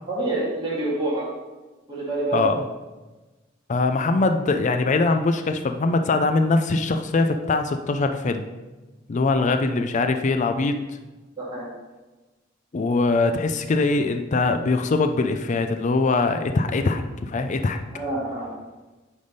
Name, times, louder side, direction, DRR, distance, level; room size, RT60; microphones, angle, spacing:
voice 1, 0.1-1.3 1.9-2.5 11.4-11.7 17.9-18.5, right 2 dB, 25° right, -8 dB, 2.2 m, -27 dB
voice 2, 2.3-2.6 3.7-8.5 9.1-10.8 12.7-17.8, left 3 dB, 40° left, 7 dB, 0.4 m, -22 dB
9.5 x 3.5 x 5.2 m, 1.2 s
head